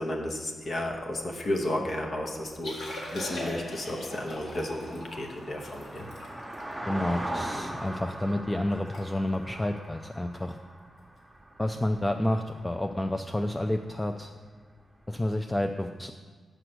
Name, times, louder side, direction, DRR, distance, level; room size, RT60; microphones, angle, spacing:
voice 1, 0.0-6.1, left 1 dB, 50° left, 1 dB, 0.9 m, -33 dB
sound 1, 0.7-13.6 13.9-14.0 14.3-14.4, right 1 dB, 5° right, 0.9 m, -42 dB
Liquid, 2.6-7.9 8.4-8.5 8.7-9.0 9.3-9.5 10.1-10.4 11.8-11.9, left 1 dB, 80° left, 2.0 m, -41 dB
voice 2, 6.9-10.6 11.6-14.3 15.1-16.1, left 1 dB, 15° left, 5 dB, 0.3 m, -30 dB
6.4 x 5.0 x 6.1 m, 1.5 s
cardioid pair, 85°, 0 cm